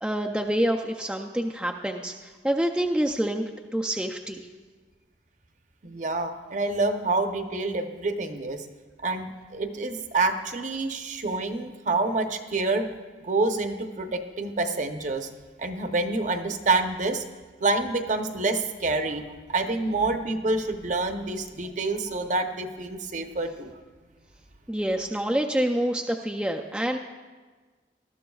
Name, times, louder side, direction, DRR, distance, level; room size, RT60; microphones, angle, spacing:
voice 1, 0.0-3.4 3.7-4.5 24.7-27.0, right 1 dB, 5° right, 2 dB, 0.4 m, -27 dB
voice 2, 5.8-8.6 9.0-12.9 13.2-15.3 15.6-17.2 17.6-19.2 19.5-23.8, right 3 dB, 45° right, 6 dB, 0.8 m, -27 dB
19.5 x 13.0 x 2.3 m, 1.4 s
head